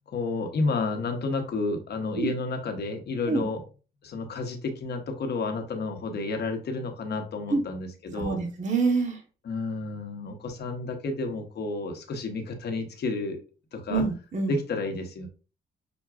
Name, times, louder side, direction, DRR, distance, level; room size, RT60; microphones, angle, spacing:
voice 1, 0.1-3.6 4.0-8.4 9.4-13.4 13.7-14.0 14.5-15.3, left 3 dB, 55° left, 4 dB, 1.0 m, -31 dB
voice 2, 8.1-9.2 13.9-14.5, right 4 dB, 35° right, 2 dB, 0.9 m, -26 dB
5.9 x 2.3 x 2.3 m, 0.35 s
cardioid pair, 90°, 20 cm